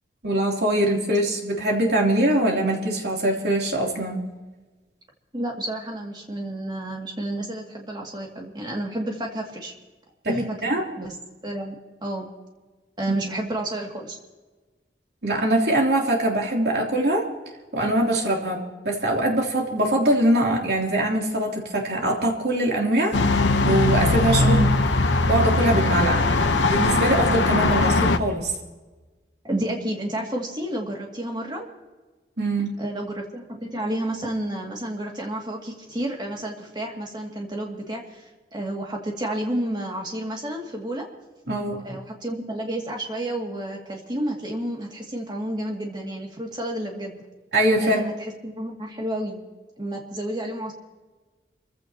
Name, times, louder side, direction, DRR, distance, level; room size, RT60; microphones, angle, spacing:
voice 1, 0.2-4.2 10.2-10.8 15.2-17.3 17.7-23.4 23.6-24.6 25.3-26.4 26.7-28.5 32.4-32.7 41.5-42.0 47.5-48.0, right 1 dB, 65° right, -1 dB, 3.2 m, -22 dB
voice 2, 5.3-9.7 10.3-11.1 11.4-11.7 12.0-12.3 13.0-14.2 24.4-24.7 29.4-31.7 32.8-41.1 41.8-47.2 47.8-49.4 49.8-50.7, right 1 dB, 25° right, 0 dB, 2.4 m, -30 dB
sound 1, 23.1-28.2, left 2 dB, 85° left, 1.0 m, -20 dB
28.5 x 15.5 x 3.0 m, 1.3 s
head